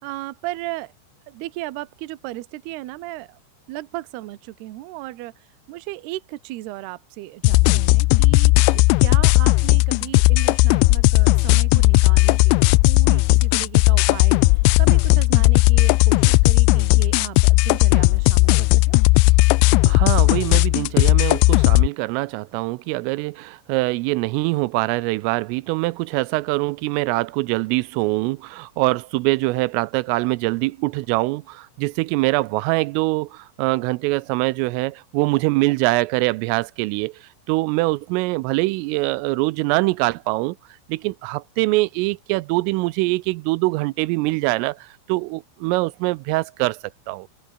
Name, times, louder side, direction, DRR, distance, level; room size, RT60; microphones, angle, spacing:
voice 1, 0.0-0.9 1.3-3.4 3.7-19.0, right 17 dB, 70° right, 2.6 m, -35 dB
sound 1, 7.4-21.9, left 24 dB, 90° left, 2.6 m, -16 dB
voice 2, 19.9-40.6 40.9-46.8 47.1-47.3, right 22 dB, 85° right, 3.2 m, -23 dB
omnidirectional pair, 5.8 m